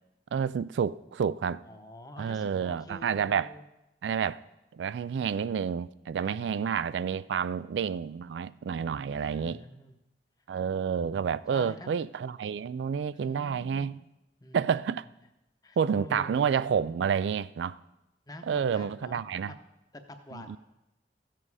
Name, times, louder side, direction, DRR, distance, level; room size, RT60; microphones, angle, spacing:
voice 1, 0.3-1.6 2.2-3.5 4.0-4.4 4.7-9.6 10.5-14.0 14.5-15.1 15.8-17.8 18.5-19.5 20.3-20.6, right 7 dB, 80° right, 0.3 m, -29 dB
voice 2, 1.7-3.7 6.2-6.8 9.1-9.9 11.5-11.9 13.1-13.9 14.4-14.7 15.6-16.5 18.3-19.2 19.5-19.6 19.9-20.6, left 1 dB, 20° left, 0.9 m, -46 dB
15.0 x 7.7 x 4.8 m
head